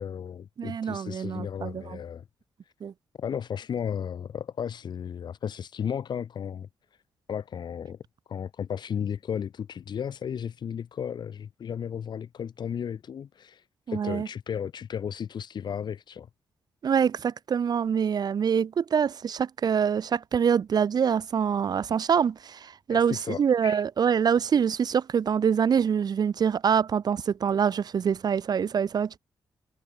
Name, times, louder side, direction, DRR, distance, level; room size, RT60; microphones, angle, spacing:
voice 1, 0.0-2.2 3.2-6.7 7.3-8.0 8.3-16.3 22.9-23.8, left 8 dB, 65° left, 1.6 m, -34 dB
voice 2, 0.6-2.0 2.8-2.9 13.9-14.3 16.8-29.2, right 7 dB, 55° right, 0.8 m, -25 dB
cardioid pair, 85°, 8 cm